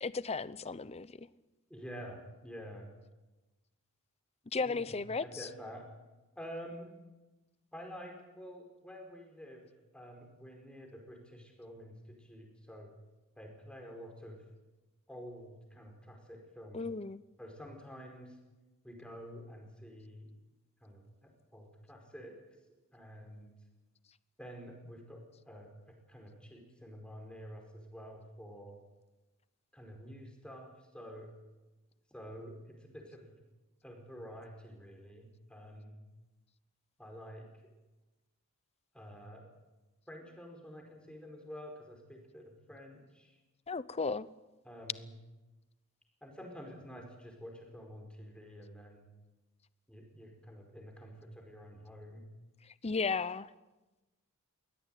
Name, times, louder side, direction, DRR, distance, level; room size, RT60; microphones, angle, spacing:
voice 1, 0.0-1.1 4.5-5.2 16.7-17.2 43.7-44.3 52.8-53.5, left 4 dB, 30° left, 0.7 m, -34 dB
voice 2, 1.7-2.9 4.7-4.9 5.2-5.9 6.3-6.9 7.7-9.6 9.9-12.9 13.4-14.4 15.1-16.8 17.4-18.4 18.8-20.3 20.8-22.4 22.9-23.6 24.4-28.8 29.7-31.3 32.1-33.3 33.8-36.0 37.0-37.5 38.9-39.5 40.1-43.4 44.6-45.1 46.2-49.1 49.9-52.3, equal, 5° left, 5.0 m, -49 dB
22.0 x 17.0 x 9.2 m
head